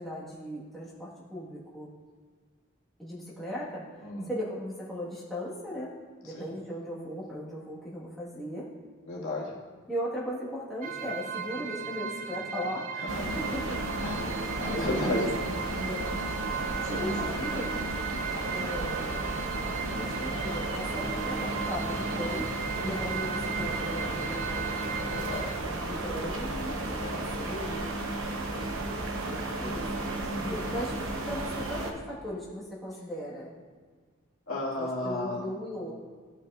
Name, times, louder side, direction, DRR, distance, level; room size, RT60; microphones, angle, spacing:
voice 1, 0.0-1.9 3.0-5.9 6.2-8.7 9.9-13.6 14.2-16.2 16.9-17.7 18.5-19.3 19.9-22.5 22.8-24.8 25.6-28.5 29.2-29.9 30.2-30.9 31.3-33.6 34.8-35.9, equal, ahead, -8 dB, 1.5 m, -38 dB
voice 2, 9.1-9.6 13.1-13.4 14.0-14.3 14.6-15.3 16.9-17.3 22.7-23.0 25.1-25.5 27.0-27.2 30.3-30.5 34.5-35.4, left 1 dB, 80° left, -4 dB, 1.8 m, -33 dB
sound 1, 10.8-25.6, right 7 dB, 35° right, 0.4 m, -37 dB
sound 2, 13.1-31.9, right 2 dB, 75° right, 0.9 m, -33 dB
14.0 x 5.4 x 2.4 m, 1.6 s
head